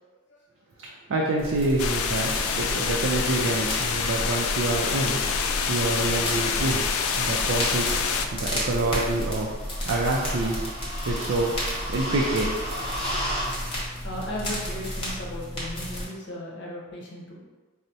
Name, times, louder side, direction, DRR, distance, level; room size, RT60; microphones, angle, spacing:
voice 1, 0.8-5.2 5.7-6.8 7.2-8.0 8.3-9.5 9.8-11.6 11.9-13.1, right 2 dB, 70° right, -2 dB, 0.4 m, -27 dB
sound 1, 1.4-16.0, equal, 25° left, 0.9 m, -31 dB
sound 2, 1.8-8.3, left 6 dB, 90° left, 0.3 m, -27 dB
voice 2, 14.0-17.4, equal, 55° left, -3 dB, 0.7 m, -36 dB
4.4 x 2.0 x 2.6 m, 1.3 s
head